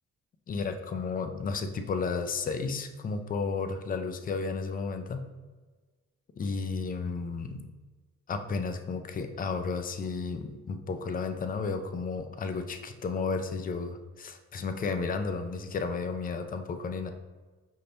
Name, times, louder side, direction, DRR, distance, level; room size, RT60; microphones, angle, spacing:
voice 1, 0.5-5.3 6.4-7.6 8.3-17.1, left 4 dB, 30° left, 7 dB, 0.4 m, -33 dB
5.6 x 2.6 x 3.4 m, 1.3 s
cardioid pair, 90°, 30 cm